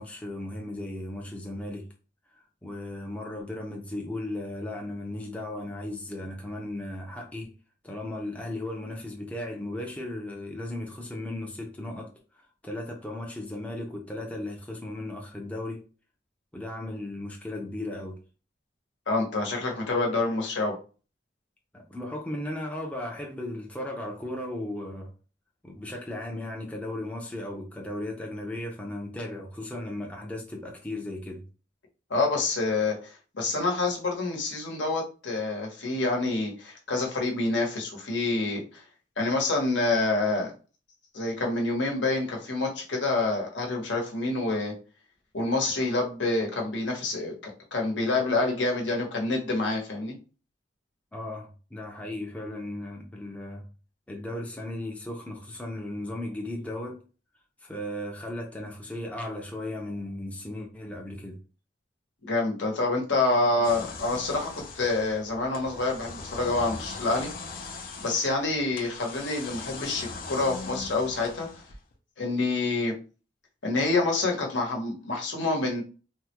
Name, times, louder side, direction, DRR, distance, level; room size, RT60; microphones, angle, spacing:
voice 1, 0.0-1.9 2.6-7.5 7.8-12.1 12.6-15.8 16.5-18.2 21.7-25.1 25.6-31.4 51.1-53.6 54.1-57.0 57.6-61.4, left 1 dB, 10° left, 0.5 m, -36 dB
voice 2, 19.1-20.8 32.1-38.8 39.2-40.5 41.1-44.7 45.3-50.2 62.2-67.3 68.0-71.5 72.2-72.9 73.6-75.8, left 2 dB, 75° left, 1.0 m, -27 dB
sound 1, 63.6-71.9, left 4 dB, 50° left, 0.6 m, -40 dB
3.4 x 2.1 x 2.9 m
head